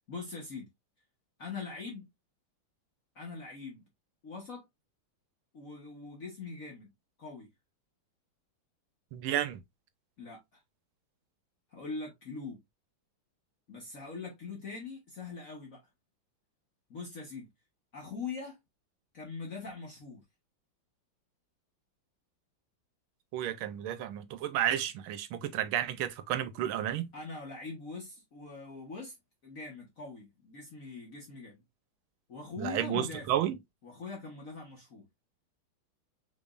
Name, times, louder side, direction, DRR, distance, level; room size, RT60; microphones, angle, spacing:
voice 1, 0.1-0.7 1.4-2.1 3.1-3.8 4.2-4.6 5.5-6.9 7.2-7.5 10.2-10.6 11.7-12.6 13.7-15.8 16.9-17.5 17.9-18.6 19.1-20.2 27.1-29.1 29.4-31.6 32.3-33.4 33.8-35.0, left 4 dB, 45° left, 1.6 m, -42 dB
voice 2, 9.1-9.6 23.3-27.1 32.6-33.5, right 11 dB, 85° right, 1.6 m, -32 dB
6.1 x 3.4 x 2.4 m
omnidirectional pair, 2.2 m